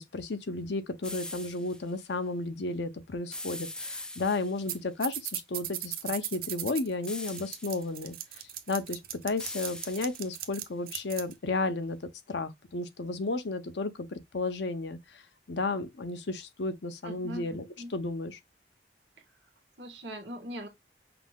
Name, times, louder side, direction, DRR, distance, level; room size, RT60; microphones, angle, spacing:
voice 1, 0.0-8.2 8.7-12.0 12.3-15.2 15.5-17.6 17.9-18.4, left 3 dB, 80° left, 0.7 m, -33 dB
sound 1, 1.0-1.8 3.3-4.7 7.1-7.9 9.4-10.4, left 1 dB, 5° left, 0.3 m, -41 dB
sound 2, 4.7-4.8 5.0-11.3, right 12 dB, 55° right, 0.6 m, -37 dB
voice 2, 17.0-17.9 19.8-20.7, equal, 80° right, 1.7 m, -41 dB
5.9 x 2.0 x 3.6 m
head